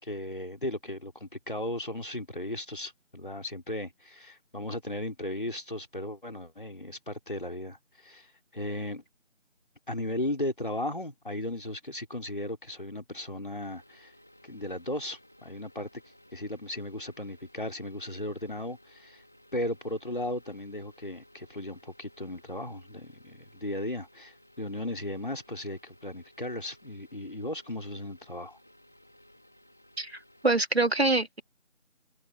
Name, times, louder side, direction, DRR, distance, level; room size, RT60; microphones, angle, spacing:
voice 1, 0.0-9.0 9.9-14.1 14.4-16.0 16.3-19.2 19.5-28.6, left 1 dB, 40° left, 3.5 m, -36 dB
sound 1, 13.6-30.6, left 1 dB, ahead, 3.4 m, -59 dB
voice 2, 30.4-31.4, right 2 dB, 55° right, 2.7 m, -25 dB
open air
figure-of-eight pair, 175°, 38 cm